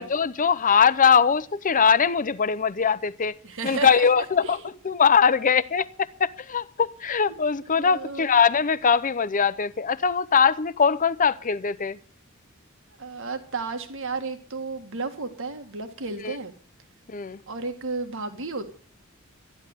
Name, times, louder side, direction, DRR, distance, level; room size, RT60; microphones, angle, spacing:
voice 1, 0.0-3.3 3.6-4.6 4.8-12.0 16.2-16.4 17.1-17.4, left 6 dB, 40° left, 0.7 m, -21 dB
voice 2, 3.4-4.1 4.4-4.7 7.3-8.3 13.0-16.5 17.5-18.7, right 4 dB, 60° right, 1.9 m, -33 dB
13.5 x 10.5 x 8.0 m
head